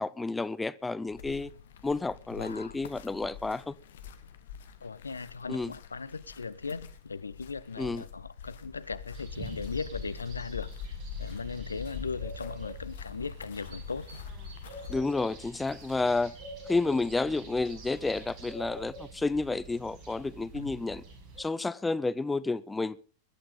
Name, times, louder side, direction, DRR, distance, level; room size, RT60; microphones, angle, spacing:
voice 1, 0.0-1.5 1.8-3.7 5.5-5.7 7.8-8.0 14.9-16.3 16.7-21.0 21.4-23.0, left 3 dB, 10° left, 0.6 m, -30 dB
sound 1, 1.1-15.0, left 7 dB, 60° left, 1.5 m, -44 dB
voice 2, 2.3-2.8 4.8-14.2 20.5-20.8, left 4 dB, 75° left, 0.7 m, -38 dB
sound 2, 9.1-21.4, right 2 dB, 40° right, 5.9 m, -46 dB
21.5 x 11.5 x 3.7 m
figure-of-eight pair, 90°, 0 cm